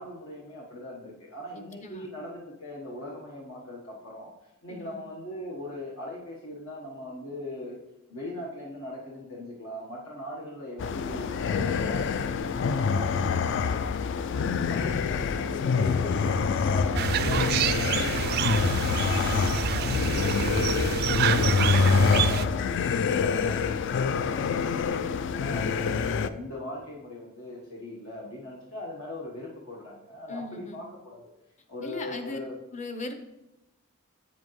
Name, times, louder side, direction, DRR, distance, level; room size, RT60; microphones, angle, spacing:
voice 1, 0.0-7.8 8.1-25.1 25.4-31.3 31.7-32.6, left 1 dB, 75° left, -4 dB, 1.2 m, -40 dB
voice 2, 1.5-2.1 4.7-4.9 23.1-23.5 30.3-30.8 31.8-32.4 32.7-33.1, left 2 dB, 35° left, 6 dB, 0.8 m, -39 dB
sound 1, 10.8-26.3, left 5 dB, 60° left, 0.3 m, -26 dB
sound 2, 17.0-22.5, right 9 dB, 50° right, 0.3 m, -28 dB
8.4 x 7.2 x 3.1 m, 0.92 s
head